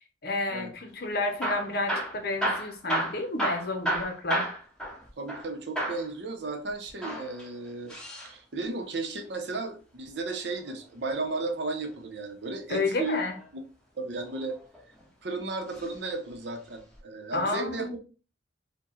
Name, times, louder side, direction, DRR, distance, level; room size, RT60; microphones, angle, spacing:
voice 1, 0.2-4.4 12.7-13.3 17.3-17.9, left 2 dB, 55° left, 5 dB, 0.7 m, -30 dB
Hammer / Drill, 1.3-5.5 5.8-6.1 6.9-8.3 10.1-11.3 13.0-13.5 14.2-15.0 15.7-15.9 16.2-16.3 17.0-17.1, right 1 dB, 5° left, 1.6 m, -32 dB
voice 2, 5.2-8.0 8.2-13.2 13.5-13.6 14.0-14.6 15.2-18.0, right 3 dB, 70° right, 5 dB, 0.7 m, -34 dB
4.5 x 2.2 x 3.0 m, 0.35 s
head